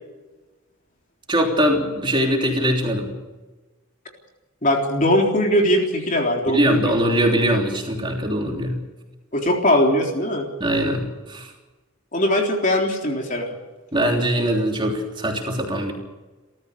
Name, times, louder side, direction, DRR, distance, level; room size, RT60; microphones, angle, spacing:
voice 1, 1.3-3.1 6.5-8.7 10.6-11.5 13.9-15.9, equal, 20° right, 1 dB, 3.3 m, -21 dB
voice 2, 4.6-6.9 9.3-10.5 12.1-13.5, left 1 dB, 35° left, 1 dB, 3.7 m, -20 dB
29.5 x 14.0 x 6.9 m, 1.2 s
head